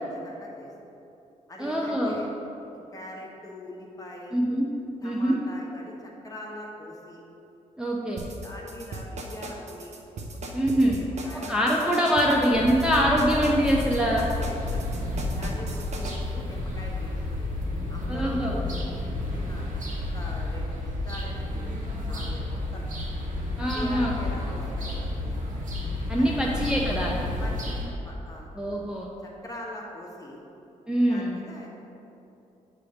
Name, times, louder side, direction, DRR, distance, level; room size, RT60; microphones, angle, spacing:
voice 1, 0.1-0.7 1.5-2.3 2.9-4.4 5.0-7.2 8.4-9.9 10.3-11.6 14.5-14.8 15.1-17.6 17.9-18.8 19.1-19.7 20.1-21.8 22.0-22.9 23.7-25.6 26.2-26.5 27.4-27.7 28.0-30.4 31.1-31.7, left 1 dB, 25° left, -2 dB, 1.3 m, -43 dB
voice 2, 1.6-2.2 4.3-4.7 5.0-5.4 7.8-8.2 10.5-11.0 11.5-14.3 18.1-18.6 23.6-24.1 26.1-27.1 28.6-29.1 30.9-31.4, equal, 5° right, -3 dB, 0.7 m, -24 dB
sound 1, 8.2-16.2, right 2 dB, 60° right, 0.8 m, -37 dB
sound 2, 12.5-27.9, left 2 dB, 75° right, 1.5 m, -31 dB
8.2 x 3.4 x 6.4 m, 2.8 s
cardioid pair, 100°, 13 cm